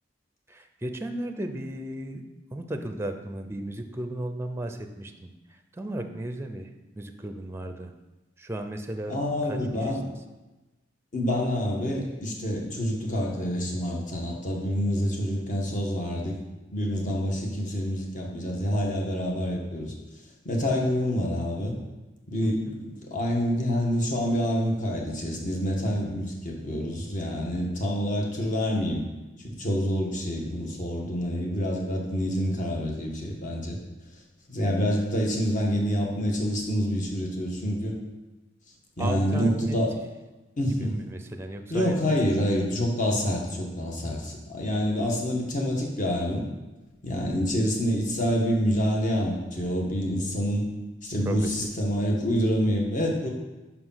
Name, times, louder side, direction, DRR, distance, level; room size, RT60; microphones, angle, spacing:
voice 1, 0.5-2.2 2.5-6.7 6.9-7.9 8.4-9.2 9.4-10.2 20.6-20.9 22.4-22.7 39.0-39.8 40.7-42.2 51.3-51.7, right 1 dB, 15° right, 6 dB, 0.5 m, -35 dB
voice 2, 9.1-10.0 11.1-16.4 16.7-19.9 20.4-21.7 22.3-29.0 29.4-33.8 34.5-37.9 39.0-40.0 40.6-41.0 41.7-46.4 47.0-50.6 51.0-53.3, equal, 45° left, -1 dB, 1.4 m, -27 dB
5.7 x 5.0 x 5.6 m, 1.1 s
head